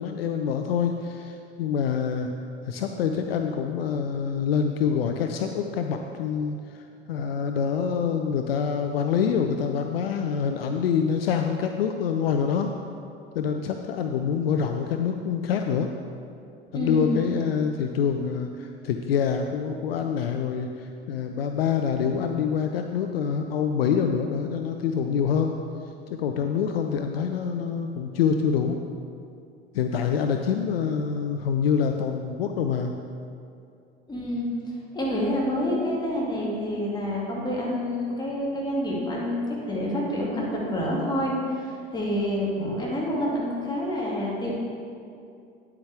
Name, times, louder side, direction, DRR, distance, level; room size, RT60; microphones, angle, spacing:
voice 1, 0.0-2.3 2.7-12.7 13.3-15.9 16.7-25.5 26.1-28.8 29.7-32.9 42.6-42.7, left 7 dB, 65° left, 5 dB, 0.5 m, -26 dB
voice 2, 16.7-17.2 34.1-34.5 34.9-44.5, left 1 dB, 15° left, -5 dB, 2.3 m, -28 dB
9.6 x 8.1 x 3.5 m, 2.5 s
figure-of-eight pair, 70°, 32 cm